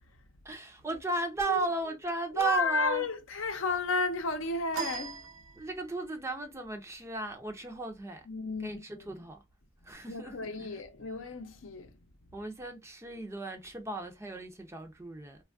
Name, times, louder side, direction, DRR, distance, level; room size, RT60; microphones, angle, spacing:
voice 1, 0.4-3.1 5.6-8.2 8.6-9.4 9.8-10.7 12.3-15.4, right 3 dB, 15° right, 0.5 m, -35 dB
voice 2, 2.3-5.2 8.2-9.1 10.0-11.9, left 4 dB, 65° left, 0.6 m, -33 dB
sound 1, 4.7-6.1, right 6 dB, 80° right, 0.7 m, -39 dB
3.2 x 2.3 x 2.4 m
head